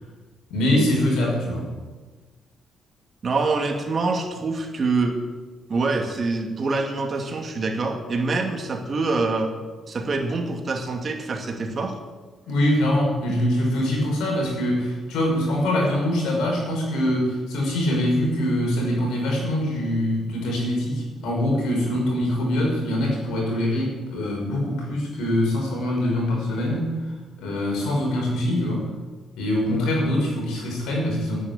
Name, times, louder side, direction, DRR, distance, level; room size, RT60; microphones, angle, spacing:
voice 1, 0.5-1.7 12.5-26.9 27.4-28.9 29.4-31.4, left 1 dB, 85° left, -1 dB, 5.4 m, -23 dB
voice 2, 3.2-5.2 5.7-9.5 9.9-12.0, right 3 dB, 40° right, 2 dB, 2.6 m, -25 dB
10.0 x 9.8 x 9.8 m, 1.3 s
cardioid pair, 90°, 0 cm